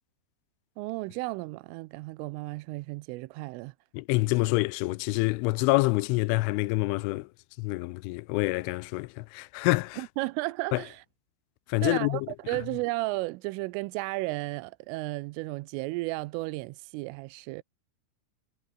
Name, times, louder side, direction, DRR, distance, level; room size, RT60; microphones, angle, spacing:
voice 1, 0.8-3.7 10.0-11.0 11.8-12.2 12.5-17.6, right 23 dB, 85° right, 3.2 m, -33 dB
voice 2, 3.9-7.3 7.6-10.0 10.7-10.8 11.7-12.3, left 23 dB, 85° left, 3.0 m, -27 dB
omnidirectional pair, 5.8 m